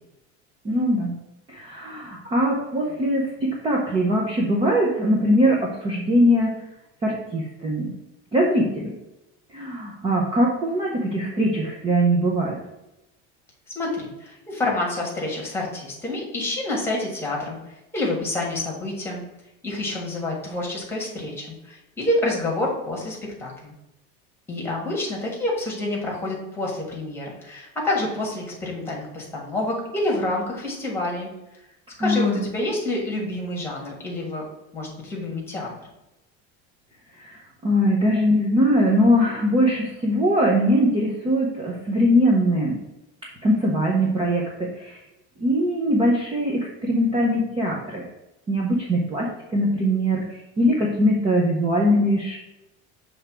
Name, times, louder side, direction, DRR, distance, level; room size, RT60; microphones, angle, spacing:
voice 1, 0.6-1.1 1.5-6.6 7.0-7.9 8.3-8.9 9.5-12.6 32.0-32.5 37.2-42.8 43.4-45.0 45.4-48.1 48.5-50.2 50.6-52.4, equal, 15° right, -2 dB, 0.7 m, -21 dB
voice 2, 13.7-19.2 19.6-23.7 24.5-31.3 32.0-34.4 34.7-35.7, left 2 dB, 5° left, -2 dB, 1.4 m, -28 dB
6.3 x 3.4 x 6.0 m, 0.94 s
cardioid pair, 175°, 32 cm